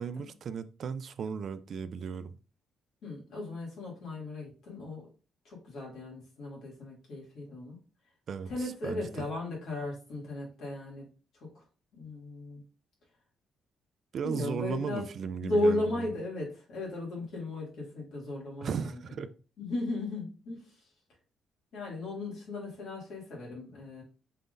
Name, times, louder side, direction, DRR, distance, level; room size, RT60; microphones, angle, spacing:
voice 1, 0.0-2.3 8.3-9.3 14.1-16.0 18.6-19.3, right 6 dB, 60° right, 0.4 m, -36 dB
voice 2, 3.0-5.1 5.4-7.8 8.4-11.1 11.5-11.6 12.0-12.6 14.2-15.0 15.4-19.0 19.6-20.9 21.7-24.0, left 2 dB, 70° left, 2.4 m, -35 dB
4.5 x 3.6 x 2.6 m
cardioid pair, 90°, 0 cm